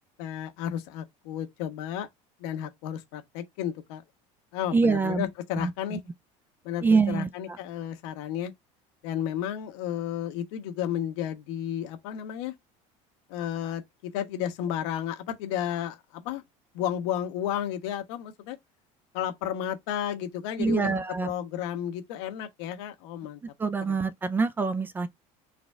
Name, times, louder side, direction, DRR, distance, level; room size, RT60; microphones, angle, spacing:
voice 1, 0.2-2.1 2.4-4.0 4.5-6.0 6.6-8.5 9.0-12.5 13.3-16.4 16.7-18.6 19.1-23.4 23.9-24.0, left 10 dB, 85° left, 1.2 m, -32 dB
voice 2, 4.7-5.3 5.6-5.7 6.8-7.3 20.6-21.3 23.6-25.1, right 4 dB, 15° right, 0.3 m, -25 dB
4.0 x 3.6 x 3.2 m
cardioid pair, 160°, 15 cm